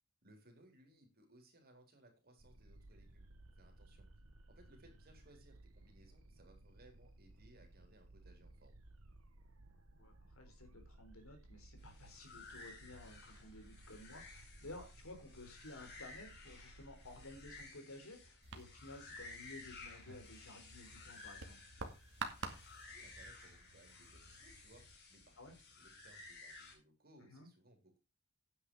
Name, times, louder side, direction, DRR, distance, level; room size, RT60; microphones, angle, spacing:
voice 1, 0.2-4.1 4.5-8.8 22.6-28.0, right 1 dB, 45° right, 4 dB, 4.0 m, -65 dB
sound 1, 2.4-17.7, right 1 dB, 85° right, 1.5 m, -60 dB
voice 2, 10.0-21.6 25.4-25.5 27.2-27.5, left 2 dB, 80° left, 5 dB, 3.9 m, -54 dB
sound 2, 11.8-26.7, left 3 dB, 55° left, 4.7 m, -56 dB
sound 3, 18.4-25.0, right 4 dB, 65° right, 2.1 m, -50 dB
9.7 x 9.1 x 4.8 m, 0.29 s
head